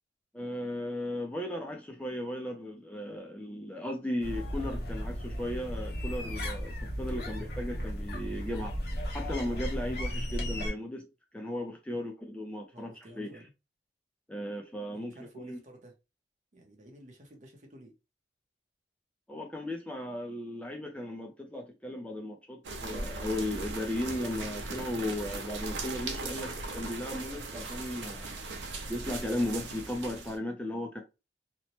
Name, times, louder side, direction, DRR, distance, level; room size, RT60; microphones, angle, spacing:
voice 1, 0.3-8.8 9.1-11.1 11.3-12.9 13.2-13.3 14.3-15.6 19.3-28.3 28.9-31.0, left 1 dB, 5° left, 0.4 m, -36 dB
sound 1, 4.2-10.7, equal, 55° left, 0.7 m, -35 dB
voice 2, 12.7-13.5 14.9-16.0 16.5-17.9, right 1 dB, 40° right, 0.7 m, -52 dB
sound 2, 22.6-30.4, right 3 dB, 85° right, 0.6 m, -38 dB
2.9 x 2.1 x 2.8 m
head